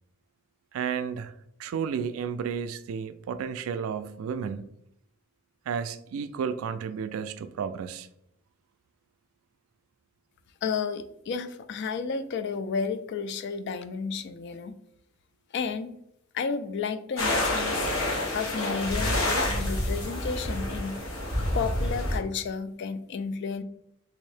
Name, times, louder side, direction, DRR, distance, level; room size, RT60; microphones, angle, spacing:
voice 1, 0.7-1.3 1.6-4.7 5.7-8.1, right 7 dB, 80° right, 0.3 m, -32 dB
voice 2, 10.6-14.7 15.5-16.0 16.3-17.9 18.3-21.0 21.5-23.6, left 5 dB, 55° left, 0.3 m, -32 dB
sound 1, 17.2-22.2, left 1 dB, 85° left, 1.0 m, -28 dB
3.4 x 2.7 x 3.3 m
head